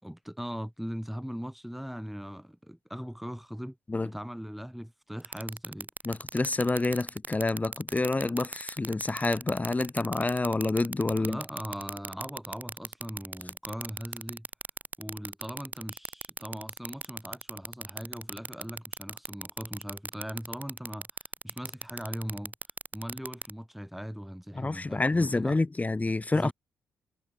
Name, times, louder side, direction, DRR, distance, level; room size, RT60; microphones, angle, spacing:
voice 1, 0.0-3.8 4.0-5.9 11.2-14.5 15.0-21.1 21.4-22.5 22.9-25.6 26.3-26.5, equal, ahead, 4.1 m, -39 dB
sound 1, 5.2-23.5, right 3 dB, 25° right, 1.6 m, -37 dB
voice 2, 6.0-11.4 24.5-26.5, left 2 dB, 25° left, 2.9 m, -28 dB
hypercardioid pair, 45°, 6 cm